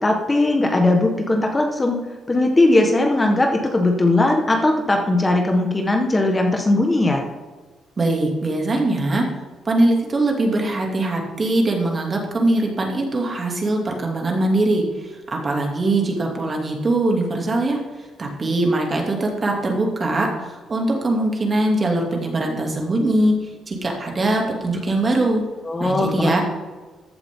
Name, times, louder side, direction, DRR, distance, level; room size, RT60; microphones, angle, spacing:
voice 1, 0.0-2.0 2.3-7.2 25.6-26.4, left 2 dB, 20° left, 3 dB, 1.5 m, -19 dB
voice 2, 8.0-9.3 9.6-17.8 18.2-25.4 25.8-26.4, right 2 dB, 35° right, 1 dB, 2.7 m, -21 dB
14.5 x 8.1 x 3.8 m, 1.3 s
cardioid pair, 90°, 0 cm